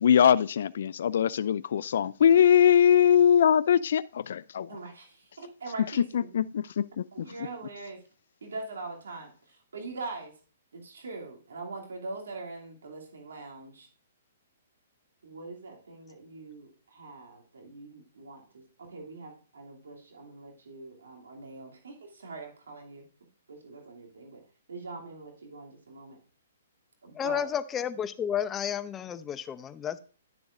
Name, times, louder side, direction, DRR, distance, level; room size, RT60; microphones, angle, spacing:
voice 1, 0.0-4.7 6.1-7.0, left 9 dB, 65° left, 0.3 m, -22 dB
voice 2, 4.7-6.3 7.1-8.0 8.4-10.3 10.7-13.9 15.2-23.0 23.5-26.2 27.0-27.4, right 3 dB, 80° right, 2.7 m, -43 dB
voice 3, 27.1-30.0, left 9 dB, 20° left, 0.7 m, -31 dB
11.5 x 7.0 x 2.5 m
hypercardioid pair, 135°, 0 cm